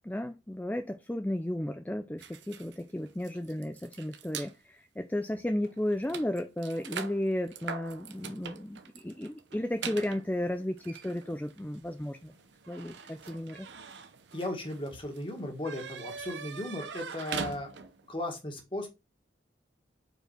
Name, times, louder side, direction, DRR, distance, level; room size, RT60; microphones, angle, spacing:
voice 1, 0.0-12.3 12.7-13.7, left 1 dB, 10° left, 0.4 m, -34 dB
sound 1, 2.2-4.5 5.2-5.4 5.6-18.1, right 6 dB, 75° right, 0.8 m, -43 dB
voice 2, 14.3-18.9, left 1 dB, 30° left, 1.7 m, -36 dB
5.2 x 4.6 x 4.8 m
head